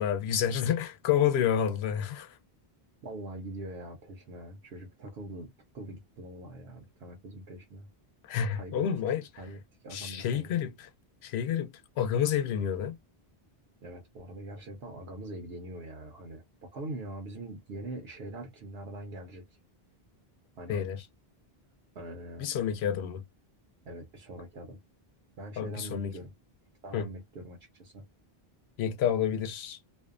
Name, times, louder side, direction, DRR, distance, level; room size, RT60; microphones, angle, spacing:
voice 1, 0.0-2.4 8.2-9.4 9.9-10.9 11.2-13.0 20.7-21.0 22.4-23.2 25.6-26.1 26.9-27.1 28.8-29.8, left 9 dB, 85° left, 0.8 m, -29 dB
voice 2, 3.0-7.9 8.5-8.8 9.4-10.5 13.8-19.4 20.6-20.8 21.9-22.5 23.9-24.8 25.4-26.3 26.8-28.0, right 1 dB, 75° right, 0.9 m, -43 dB
2.6 x 2.1 x 2.4 m
omnidirectional pair, 1.0 m